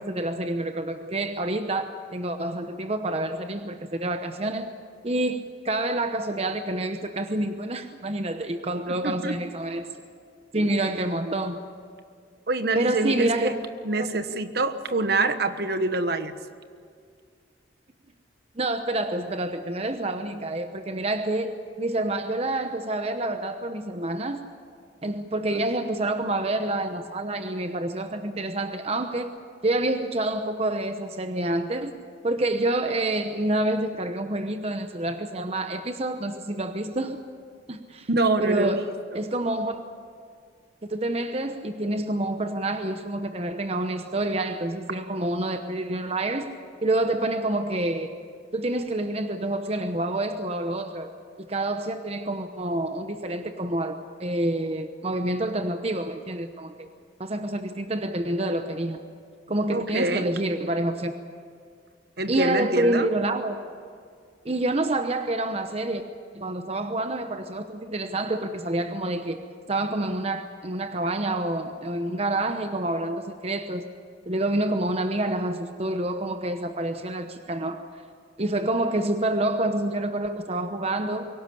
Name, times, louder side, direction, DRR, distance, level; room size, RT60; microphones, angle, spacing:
voice 1, 0.0-4.7 5.0-9.9 10.5-11.6 12.7-13.6 14.0-14.1 18.6-24.4 25.0-29.3 29.6-31.9 32.2-37.2 37.7-38.1 38.4-38.8 39.1-39.8 40.9-46.5 46.8-48.1 48.5-51.1 51.4-56.9 57.2-59.0 59.5-61.1 62.3-63.6 64.4-66.0 66.3-69.4 69.7-73.9 74.3-77.8 78.4-81.3, right 1 dB, 35° right, 7 dB, 0.9 m, -27 dB
voice 2, 8.9-9.3 12.5-13.5 13.8-16.3 25.5-25.6 25.9-26.0 38.1-38.8 39.1-39.2 59.7-60.3 62.2-63.1, right 2 dB, 55° right, 10 dB, 1.2 m, -26 dB
23.5 x 18.0 x 8.5 m, 2.2 s
head